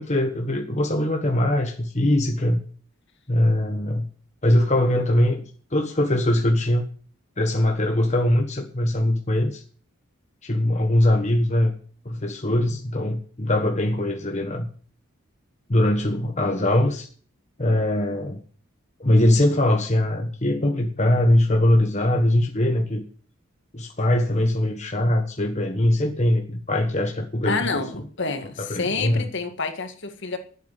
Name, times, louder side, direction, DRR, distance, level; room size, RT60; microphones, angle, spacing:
voice 1, 0.0-2.6 3.3-4.1 4.4-5.4 5.7-6.8 7.4-9.6 10.4-11.7 12.0-14.7 15.7-17.1 17.6-18.4 19.0-23.0 23.7-27.8 28.6-29.3, left 1 dB, 35° left, 1.4 m, -21 dB
voice 2, 27.4-30.4, left 4 dB, 55° left, 1.8 m, -28 dB
11.5 x 8.4 x 8.2 m
head